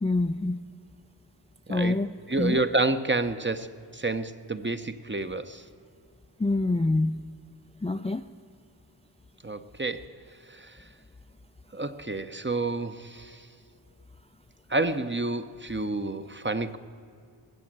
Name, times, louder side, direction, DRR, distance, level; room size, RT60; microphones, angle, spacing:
voice 1, 0.0-0.6 1.7-2.1 2.4-2.6 6.4-7.2 7.8-8.2, left 2 dB, 15° left, 9 dB, 0.4 m, -25 dB
voice 2, 1.7-2.0 2.3-5.6 9.4-10.1 10.5-10.8 11.7-13.5 14.7-16.8, right 2 dB, 25° right, 10 dB, 0.8 m, -29 dB
20.0 x 7.7 x 8.7 m, 2.4 s
wide cardioid pair, 45°, 44 cm